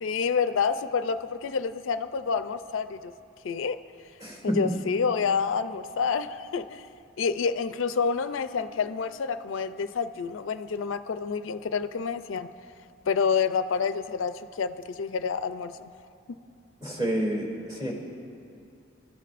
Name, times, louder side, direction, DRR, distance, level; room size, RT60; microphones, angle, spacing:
voice 1, 0.0-3.1 3.4-3.8 4.4-6.9 7.2-12.5 13.1-15.9, left 5 dB, 80° left, 11 dB, 0.4 m, -28 dB
voice 2, 4.2-4.8 16.8-17.9, right 1 dB, 20° right, -3 dB, 2.7 m, -29 dB
28.0 x 13.5 x 2.5 m, 2.5 s
head